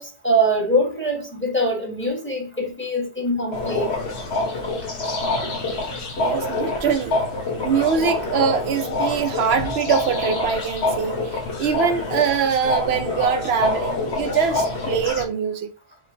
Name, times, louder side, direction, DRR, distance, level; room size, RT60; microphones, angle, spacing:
voice 1, 0.0-3.9, right 1 dB, 10° left, 1.2 m, -23 dB
sound 1, 3.5-15.2, left 2 dB, 90° left, 1.4 m, -26 dB
voice 2, 6.2-7.2 7.6-15.7, right 7 dB, 75° right, 0.8 m, -23 dB
4.8 x 3.3 x 2.7 m
omnidirectional pair, 1.1 m